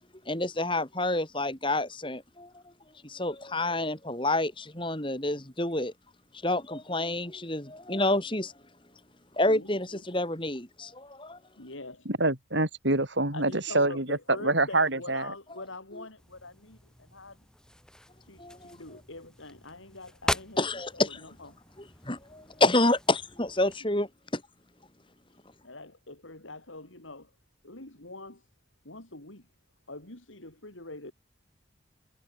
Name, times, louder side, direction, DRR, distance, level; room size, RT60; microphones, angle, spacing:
voice 1, 0.3-2.5 3.0-5.9 6.4-8.5 9.3-11.4 18.4-18.8 20.6-21.2 22.0-24.4, left 2 dB, 25° left, 4.0 m, -28 dB
voice 2, 9.5-10.0 11.6-12.1 13.3-17.4 18.2-20.7 20.9-21.5 25.6-27.3 27.6-28.5 28.8-29.5 29.9-31.1, left 2 dB, 85° left, 5.3 m, -44 dB
voice 3, 12.1-15.3, right 2 dB, 70° right, 5.8 m, -26 dB
sound 1, 16.2-23.8, left 1 dB, 5° left, 2.9 m, -40 dB
head